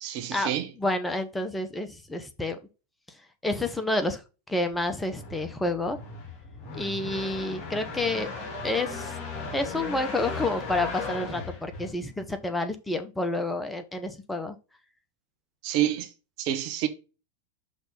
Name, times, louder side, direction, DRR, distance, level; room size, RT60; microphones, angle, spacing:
voice 1, 0.0-0.7 15.6-16.1 16.4-16.9, right 12 dB, 45° right, 1.1 m, -28 dB
voice 2, 0.8-2.6 3.4-4.2 4.5-6.0 6.8-8.3 8.6-9.1 9.5-14.5, left 2 dB, 5° left, 0.8 m, -29 dB
sound 1, 4.8-12.4, left 3 dB, 30° left, 2.3 m, -37 dB
6.2 x 3.3 x 5.4 m
figure-of-eight pair, 90°, 0 cm